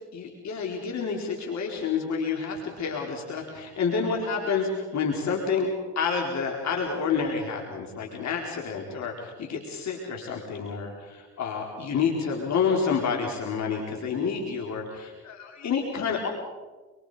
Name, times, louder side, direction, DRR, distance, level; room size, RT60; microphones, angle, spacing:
voice 1, 0.1-5.7 6.0-16.3, left 5 dB, 65° left, 0 dB, 4.4 m, -29 dB
27.5 x 25.0 x 5.1 m, 1.3 s
cardioid pair, 90°, 30 cm